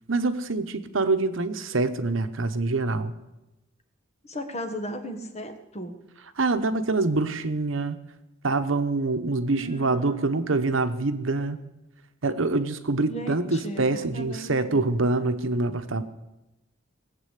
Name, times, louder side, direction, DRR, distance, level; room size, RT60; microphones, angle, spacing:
voice 1, 0.1-3.1 6.4-8.0 8.4-11.6 12.2-16.0, right 3 dB, 85° right, 10 dB, 1.0 m, -25 dB
voice 2, 4.2-5.9 9.5-10.4 13.0-14.8, equal, 35° left, 6 dB, 1.6 m, -36 dB
19.5 x 7.5 x 8.3 m, 0.98 s
head